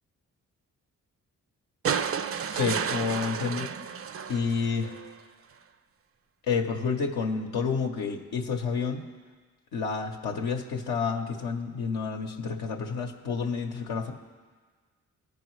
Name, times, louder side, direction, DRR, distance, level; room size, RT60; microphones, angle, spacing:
sound 1, 1.8-5.1 6.5-6.6, right 7 dB, 40° right, 0.5 m, -32 dB
voice 1, 2.5-3.7 4.3-4.9 6.5-9.1 9.7-14.1, left 5 dB, 80° left, 1 dB, 0.8 m, -29 dB
15.0 x 5.2 x 3.1 m, 1.5 s
supercardioid pair, 45°, 37 cm